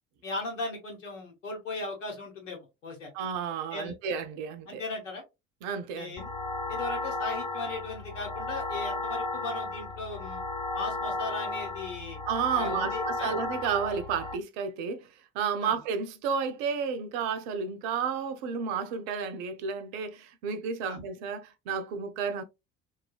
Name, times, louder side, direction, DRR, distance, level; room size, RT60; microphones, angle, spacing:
voice 1, 0.2-3.1 3.7-3.9 4.7-5.2 5.9-6.3 6.7-10.4 10.7-12.2 12.5-13.3 15.6-15.7 20.9-21.0, left 3 dB, 80° left, 1.0 m, -37 dB
voice 2, 3.1-4.8 5.6-6.2 12.3-15.1 15.3-22.4, right 6 dB, 60° right, 0.6 m, -32 dB
sound 1, 6.2-14.3, left 2 dB, 10° left, 0.5 m, -34 dB
3.2 x 2.3 x 2.3 m
figure-of-eight pair, 50°, 37 cm